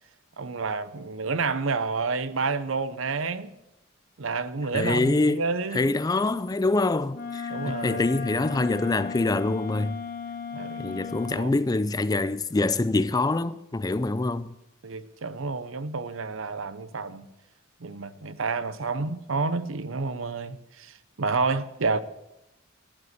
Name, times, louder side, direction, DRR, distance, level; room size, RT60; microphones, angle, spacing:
voice 1, 0.4-3.5 4.2-5.9 7.5-8.0 10.5-11.0 11.4-11.5 14.8-17.3 17.8-22.0, right 4 dB, 70° right, 0.8 m, -29 dB
voice 2, 4.7-5.5 5.7-10.0 10.8-14.6, left 2 dB, 20° left, 0.4 m, -25 dB
Wind instrument woodwind instrument, 7.1-11.5, left 6 dB, 40° left, 1.1 m, -35 dB
11.0 x 9.4 x 8.1 m
head